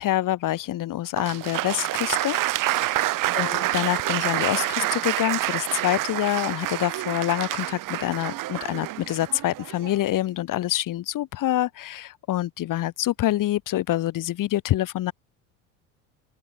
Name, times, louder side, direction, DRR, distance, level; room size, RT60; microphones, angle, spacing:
voice 1, 0.0-2.4 2.7-3.1 3.3-15.1, left 14 dB, 50° left, 6.3 m, -26 dB
Applause, 1.2-10.1, right 16 dB, 55° right, 2.3 m, -27 dB
open air
supercardioid pair, 100°, 40 cm